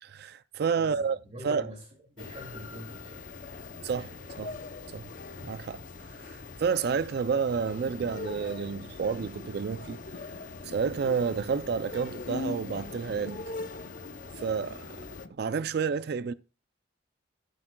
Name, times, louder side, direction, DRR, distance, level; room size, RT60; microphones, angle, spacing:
voice 1, 0.0-1.2 1.4-1.7 3.8-4.5 4.9-5.1 5.4-5.8 6.2-10.0 10.6-13.5 14.4-15.0 15.4-16.3, right 6 dB, 55° right, 0.3 m, -30 dB
voice 2, 0.7-1.9 2.2-4.3 4.8-4.9, equal, 35° right, 2.3 m, -46 dB
sound 1, 2.2-15.3, left 3 dB, 45° left, 0.6 m, -42 dB
sound 2, 7.4-15.3, left 2 dB, 70° left, 1.0 m, -49 dB
12.0 x 8.8 x 2.2 m
head